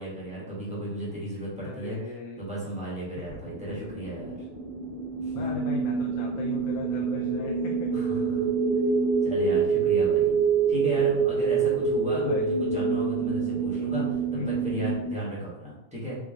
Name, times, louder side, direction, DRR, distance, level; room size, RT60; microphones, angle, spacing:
voice 1, 0.0-2.0 2.4-4.5 5.2-5.4 7.9-8.5 9.2-10.3 10.7-16.2, equal, 5° right, -7 dB, 1.3 m, -35 dB
voice 2, 1.6-2.4 3.1-3.5 5.3-8.0 12.1-12.4 14.3-14.8, left 6 dB, 80° left, -1 dB, 1.0 m, -38 dB
sound 1, 3.3-15.1, right 5 dB, 30° right, 0.8 m, -26 dB
3.5 x 3.0 x 3.5 m, 0.93 s
omnidirectional pair, 1.5 m